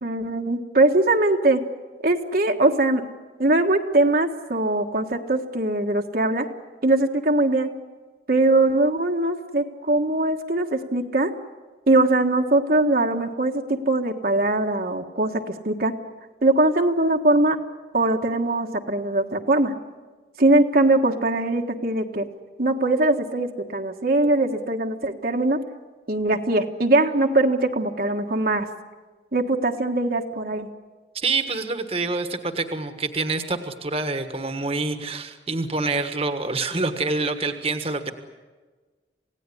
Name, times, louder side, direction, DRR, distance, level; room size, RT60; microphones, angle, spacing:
voice 1, 0.0-1.6 2.0-3.0 3.4-6.5 6.8-7.7 8.3-11.3 11.9-15.9 16.4-17.6 17.9-19.7 20.4-22.3 22.6-25.6 26.1-28.7 29.3-30.7, right 2 dB, 50° right, 3 dB, 1.5 m, -21 dB
voice 2, 31.1-38.1, right 3 dB, 30° right, 8 dB, 1.5 m, -26 dB
27.5 x 17.5 x 9.9 m, 1.4 s
head